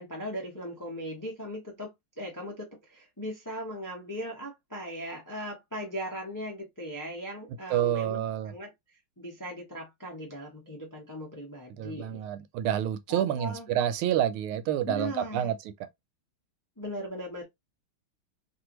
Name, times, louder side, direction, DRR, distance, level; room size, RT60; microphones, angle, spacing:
voice 1, 0.0-1.9 2.2-8.7 9.2-12.2 13.1-13.7 14.8-15.5 16.8-17.4, equal, 25° left, 0.4 m, -38 dB
voice 2, 7.7-8.5 11.8-15.6, right 10 dB, 90° right, 1.4 m, -28 dB
3.2 x 2.6 x 2.9 m
omnidirectional pair, 2.3 m